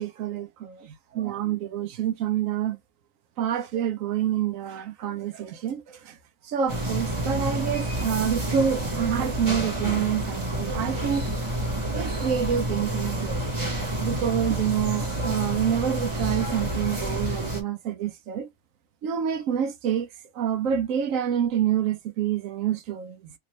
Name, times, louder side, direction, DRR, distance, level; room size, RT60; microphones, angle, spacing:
voice 1, 0.0-2.8 3.4-6.2 6.4-11.3 11.9-13.4 14.0-18.5 19.0-20.1 20.3-23.3, right 9 dB, 70° right, 1.0 m, -27 dB
sound 1, 6.7-17.6, right 1 dB, 25° right, 1.0 m, -29 dB
3.5 x 2.6 x 3.0 m
omnidirectional pair, 1.6 m